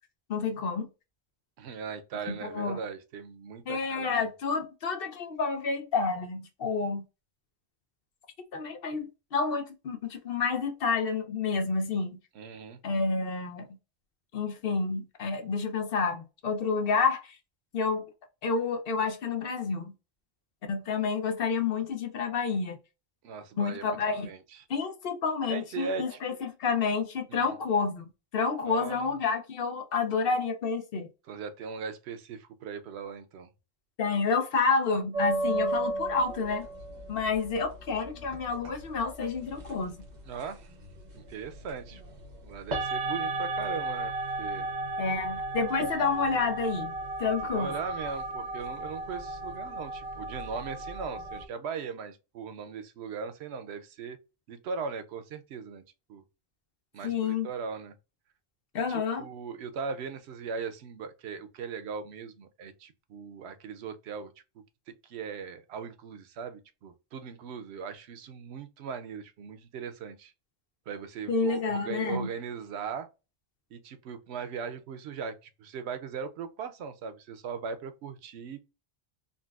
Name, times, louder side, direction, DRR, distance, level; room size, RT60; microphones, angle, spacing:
voice 1, 0.3-0.9 2.3-2.8 3.7-7.0 8.5-12.2 12.8-13.7 14.3-17.4 17.7-18.1 18.4-19.9 20.7-22.8 23.6-24.3 24.7-28.0 28.3-31.1 34.0-36.7 37.1-40.0 45.0-47.7 57.0-57.5 58.7-59.3 71.3-72.3, left 4 dB, 65° left, 0.9 m, -29 dB
voice 2, 1.6-4.2 12.3-12.8 23.2-24.0 24.2-24.4 25.5-26.2 27.3-27.6 28.6-29.2 31.3-33.5 40.2-40.7 41.1-42.0 42.4-44.1 44.4-44.7 47.5-54.2 54.5-55.8 56.1-56.2 56.9-57.9 58.9-64.3 65.0-70.3 70.9-73.1 73.7-78.6, right 6 dB, 90° right, 0.9 m, -39 dB
sound 1, 35.1-51.4, right 2 dB, 45° right, 0.9 m, -35 dB
3.9 x 2.1 x 2.3 m
omnidirectional pair, 1.1 m